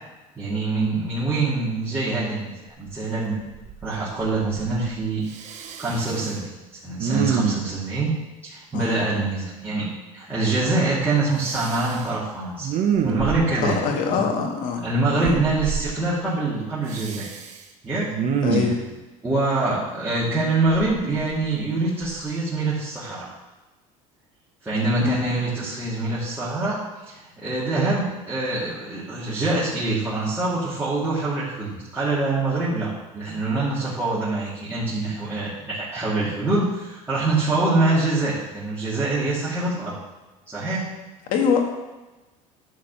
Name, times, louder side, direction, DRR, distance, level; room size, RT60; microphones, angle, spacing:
voice 1, 0.4-3.4 3.8-5.2 5.8-8.2 8.4-12.7 13.0-13.8 14.1-14.2 14.8-17.3 17.8-18.1 18.5-18.6 19.2-23.3 24.6-26.8 27.0-40.0 40.5-40.9, right 2 dB, 15° right, -10 dB, 2.7 m, -25 dB
Respiratory sounds, 2.9-3.0 3.4-3.9 4.2-4.9 5.3-6.3 7.0-7.8 11.4-12.0 12.6-13.7 15.2-15.8 16.9-17.6 18.1-18.9 20.7-21.6 22.0-22.2, right 7 dB, 50° right, 1.1 m, -27 dB
voice 2, 8.7-9.1 13.6-14.9 15.2-15.4 18.4-18.8 25.0-25.3 41.3-41.6, left 6 dB, 60° left, 2 dB, 1.9 m, -24 dB
10.5 x 4.3 x 6.9 m, 1.1 s
cardioid pair, 120°, 15 cm